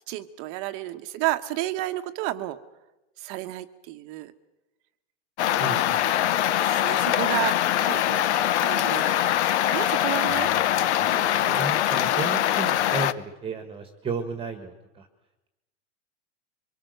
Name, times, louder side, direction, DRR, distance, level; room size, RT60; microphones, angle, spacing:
voice 1, 0.1-2.6 3.2-4.3 6.6-8.2 8.6-9.2 9.7-10.5 11.1-11.8, right 16 dB, 40° right, 9 dB, 1.1 m, -31 dB
sound 1, 5.4-13.1, left 12 dB, 65° left, 1.1 m, -23 dB
voice 2, 5.6-6.0 10.2-15.1, right 4 dB, 15° right, 8 dB, 1.6 m, -34 dB
24.5 x 23.0 x 6.6 m, 1.0 s
supercardioid pair, 140°, 36 cm